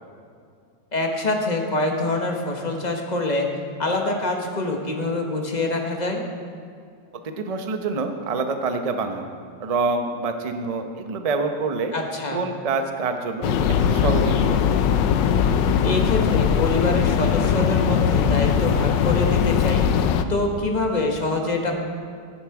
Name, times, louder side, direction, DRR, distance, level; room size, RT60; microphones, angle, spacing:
voice 1, 0.9-3.5 3.8-6.2 11.9-12.4 15.8-21.7, left 2 dB, 30° left, 2 dB, 1.1 m, -25 dB
voice 2, 7.2-9.3 9.6-11.9 12.3-14.8, right 3 dB, 50° right, 6 dB, 0.4 m, -26 dB
sound 1, 13.4-20.2, left 7 dB, 80° left, 1.3 m, -20 dB
13.0 x 10.5 x 4.8 m, 2.3 s
omnidirectional pair, 1.9 m